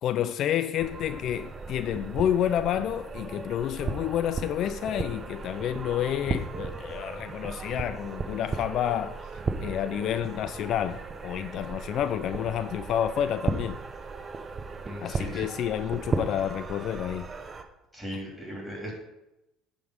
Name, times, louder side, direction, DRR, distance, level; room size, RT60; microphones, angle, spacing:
voice 1, 0.0-9.2 9.6-13.8 15.0-17.3 18.1-18.2, left 10 dB, 55° left, 0.3 m, -29 dB
sound 1, 0.8-17.6, right 4 dB, 30° right, 0.7 m, -36 dB
voice 2, 14.8-15.4 17.9-18.9, equal, ahead, 3.0 m, -37 dB
9.6 x 3.7 x 6.5 m
cardioid pair, 120°, 0 cm